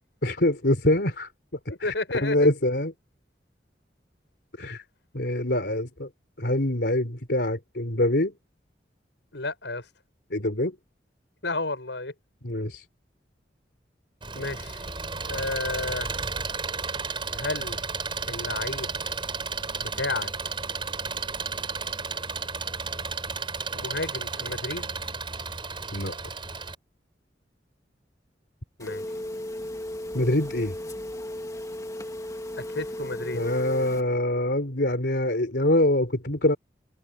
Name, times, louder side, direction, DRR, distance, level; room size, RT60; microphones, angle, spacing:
voice 1, 0.2-1.3 1.8-1.9 2.2-2.9 4.6-4.8 5.1-6.1 6.4-8.3 10.3-10.7 12.4-12.8 25.9-26.1 30.1-30.7 33.3-36.6, left 1 dB, 65° left, 3.7 m, -24 dB
voice 2, 1.7-2.5 9.3-9.8 11.4-12.1 14.3-14.8 15.2-16.1 17.3-17.8 18.3-18.9 19.8-20.3 23.7-24.9 28.8-29.0 32.7-33.4, left 2 dB, 90° left, 6.3 m, -32 dB
Engine, 14.2-26.7, right 4 dB, 30° right, 5.4 m, -33 dB
Telephone, 28.8-34.0, left 1 dB, 20° left, 2.4 m, -35 dB
head